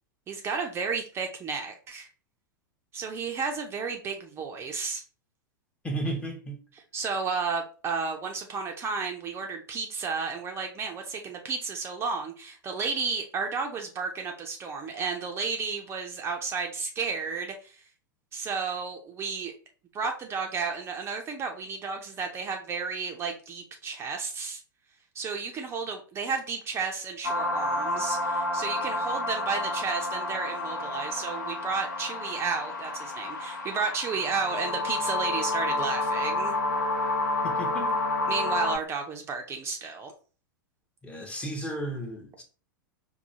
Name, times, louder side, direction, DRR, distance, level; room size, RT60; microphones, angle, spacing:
voice 1, 0.3-2.1 2.9-5.0 6.7-17.8 18.3-19.5 19.9-24.6 25.1-36.5 38.3-40.1, right 5 dB, 20° right, 0.5 m, -32 dB
voice 2, 5.8-6.6 37.4-37.9 41.0-42.4, right 1 dB, 10° left, 0.7 m, -33 dB
sound 1, 27.2-38.8, left 2 dB, 65° left, 0.9 m, -30 dB
5.4 x 2.3 x 2.7 m
figure-of-eight pair, 95°, 11 cm